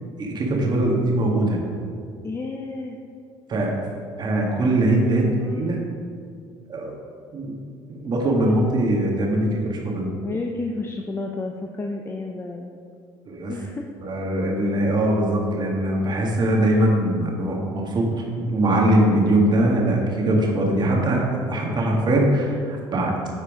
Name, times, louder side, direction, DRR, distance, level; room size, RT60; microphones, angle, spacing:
voice 1, 0.2-1.6 3.5-3.7 4.2-5.8 6.7-7.0 7.3-7.6 7.9-10.1 13.2-13.5 14.0-18.1 18.3-23.4, right 1 dB, 40° right, -1 dB, 1.8 m, -21 dB
voice 2, 2.2-3.0 5.2-5.9 8.5-8.6 10.2-12.7 13.5-13.9 21.7-22.2, left 3 dB, 25° left, 2 dB, 0.7 m, -31 dB
9.2 x 4.4 x 5.0 m, 2.2 s
supercardioid pair, 80°, 11 cm